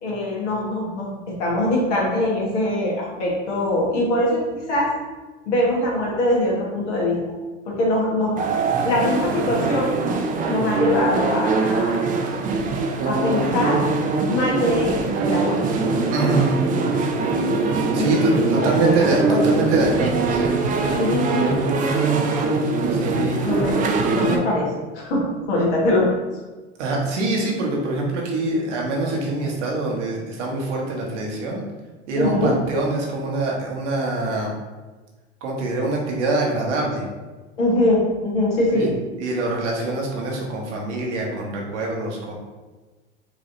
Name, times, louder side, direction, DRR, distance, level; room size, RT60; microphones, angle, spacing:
voice 1, 0.0-1.1 1.4-4.9 5.5-7.2 7.7-8.4 8.8-10.0 10.5-12.0 13.0-13.8 14.3-15.6 17.9-19.4 20.9-21.6 23.4-23.8 24.1-26.1 32.2-32.5 37.6-38.9, left 1 dB, 70° left, -3 dB, 1.5 m, -22 dB
sound 1, 8.4-24.4, right 3 dB, 25° right, 0.4 m, -22 dB
voice 2, 16.1-16.5 17.9-20.6 22.9-23.4 26.8-31.6 32.1-34.5 35.4-37.0 38.7-38.9 39.2-42.3, right 2 dB, 70° right, -1 dB, 1.3 m, -24 dB
4.8 x 2.9 x 2.6 m, 1.2 s
hypercardioid pair, 90°, 37 cm